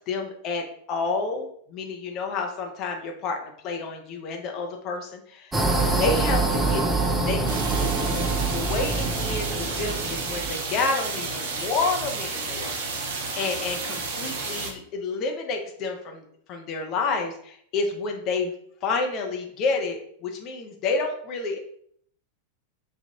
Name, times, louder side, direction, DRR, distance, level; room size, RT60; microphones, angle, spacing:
voice 1, 0.1-5.5 6.0-6.8 7.1-12.8 13.4-18.5 18.8-21.6, left 4 dB, 35° left, 3 dB, 0.8 m, -29 dB
sound 1, 5.5-10.5, right 3 dB, 10° right, 0.6 m, -25 dB
sound 2, 7.5-14.7, right 4 dB, 50° right, 0.7 m, -31 dB
5.1 x 2.5 x 2.9 m, 0.64 s
figure-of-eight pair, 90°, 0 cm